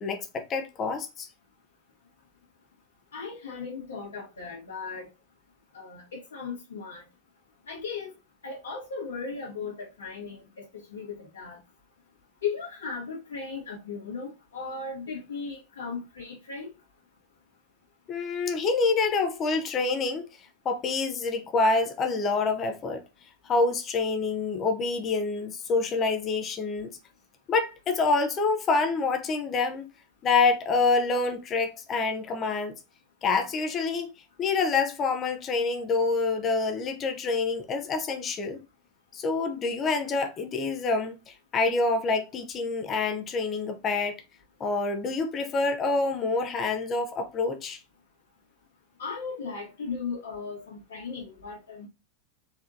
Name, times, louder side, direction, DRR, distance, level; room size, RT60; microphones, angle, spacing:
voice 1, 0.0-1.3 18.1-20.2 20.6-23.0 23.5-26.9 27.5-29.8 30.2-32.7 33.2-34.1 34.4-38.6 39.1-41.2 41.5-44.2 44.6-47.8, left 4 dB, 25° left, 0.8 m, -27 dB
voice 2, 3.1-5.1 5.7-7.0 7.7-8.1 8.4-11.6 12.4-16.7 49.0-51.9, left 5 dB, 65° left, 1.6 m, -37 dB
4.4 x 3.6 x 2.7 m
figure-of-eight pair, 90°, 0 cm